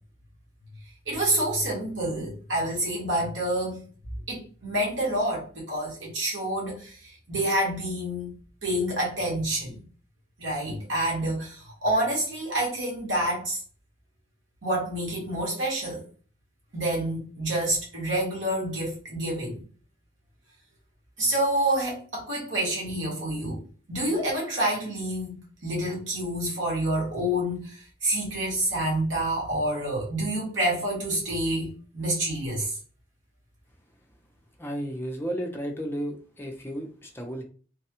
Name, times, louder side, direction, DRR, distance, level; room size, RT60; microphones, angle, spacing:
voice 1, 1.1-3.8 4.3-8.3 8.6-9.8 10.4-13.6 14.6-16.0 16.7-19.6 21.2-23.6 23.9-25.3 25.6-32.7, right 1 dB, 90° right, -4 dB, 1.4 m, -28 dB
voice 2, 34.6-37.4, equal, 10° left, 1 dB, 0.5 m, -33 dB
3.3 x 2.2 x 2.8 m, 0.41 s
head